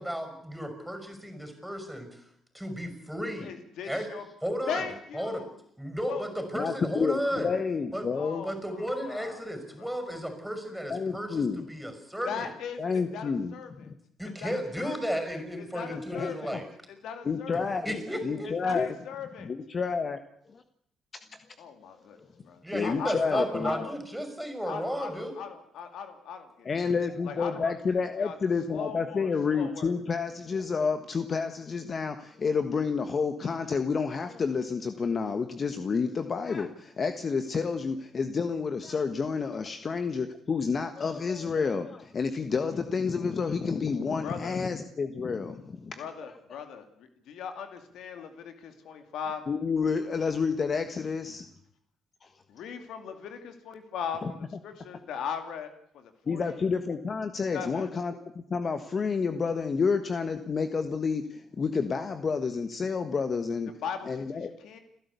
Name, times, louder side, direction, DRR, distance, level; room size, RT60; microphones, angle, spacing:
voice 1, 0.0-2.1 2.5-3.5 3.8-4.1 4.4-4.8 5.1-5.4 5.8-7.5 7.9-8.1 8.4-12.5 14.2-16.7 17.8-18.5 22.6-25.4, equal, 5° right, 8 dB, 5.7 m, -33 dB
voice 2, 3.4-4.2 4.7-5.5 6.1-6.2 8.1-9.5 9.8-9.9 12.2-13.9 14.2-15.1 15.6-16.5 16.9-17.7 18.4-19.5 21.6-22.2 22.4-23.9 24.7-26.7 27.2-27.7 28.2-28.4 28.7-29.9 44.2-44.6 46.0-49.4 52.5-56.5 57.5-57.9 63.8-64.8, left 7 dB, 75° left, 7 dB, 2.4 m, -39 dB
voice 3, 6.5-8.4 10.9-11.6 12.8-13.9 15.9-16.6 17.2-19.0 19.4-20.2 20.5-20.6 22.7-23.9 26.6-46.0 49.5-51.4 52.2-52.3 54.2-54.3 56.3-63.7 64.0-64.5, left 5 dB, 45° left, 8 dB, 1.4 m, -29 dB
29.5 x 11.5 x 8.3 m, 0.68 s
supercardioid pair, 70°, 0 cm